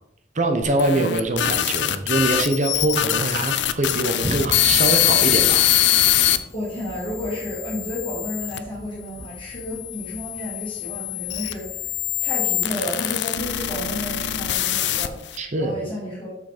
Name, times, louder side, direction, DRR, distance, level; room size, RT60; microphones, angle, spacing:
voice 1, 0.3-5.6 15.4-15.7, right 2 dB, 45° right, 6 dB, 0.9 m, -23 dB
sound 1, 0.6-6.4 7.0-8.6 9.4-15.4, left 12 dB, 80° left, 0.5 m, -23 dB
Thunder, 4.2-13.6, right 1 dB, 20° right, 0.5 m, -39 dB
voice 2, 6.5-16.3, left 1 dB, 30° left, -7 dB, 2.3 m, -32 dB
6.3 x 6.3 x 5.0 m, 0.84 s
head